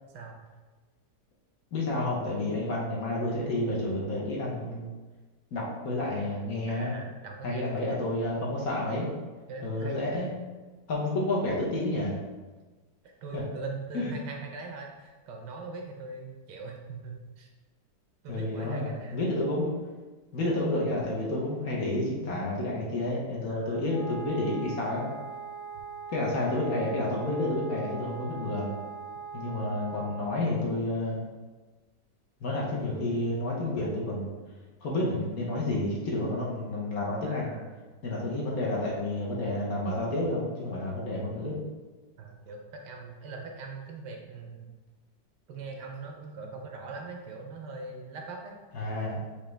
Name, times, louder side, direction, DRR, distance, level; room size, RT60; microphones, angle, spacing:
voice 1, 0.1-0.5 6.7-8.1 9.5-10.3 13.0-17.5 18.2-19.2 23.5-23.9 37.2-37.7 42.2-44.7 45.5-48.5 49.1-49.2, right 4 dB, 75° right, 2 dB, 1.2 m, -41 dB
voice 2, 1.7-4.9 5.5-6.9 7.4-9.1 9.6-10.3 10.9-12.1 13.3-13.4 13.9-14.1 18.3-19.7 20.3-25.1 26.1-28.7 29.3-31.2 32.4-34.3 34.8-37.5 38.0-41.5 48.7-49.2, left 1 dB, 60° left, -4 dB, 1.3 m, -30 dB
Wind instrument woodwind instrument, 23.9-30.5, right 5 dB, 80° left, 0.6 m, -41 dB
5.1 x 2.9 x 3.2 m, 1.3 s
omnidirectional pair, 1.9 m